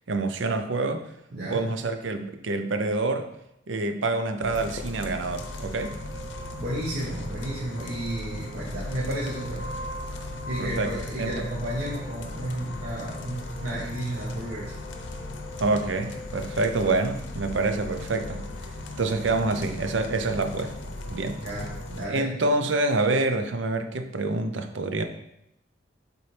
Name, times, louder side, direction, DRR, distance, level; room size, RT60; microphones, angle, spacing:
voice 1, 0.1-1.1 1.5-3.3 3.7-6.0 10.6-11.3 15.6-18.4 19.0-20.7 21.1-21.4 22.1-25.0, right 3 dB, 75° right, 7 dB, 0.6 m, -27 dB
voice 2, 1.3-1.7 6.6-9.7 10.5-14.7 21.4-22.3, right 1 dB, 60° right, -5 dB, 1.2 m, -32 dB
sound 1, 4.4-22.1, left 2 dB, 70° left, 0.7 m, -37 dB
7.1 x 4.1 x 3.3 m, 0.81 s
head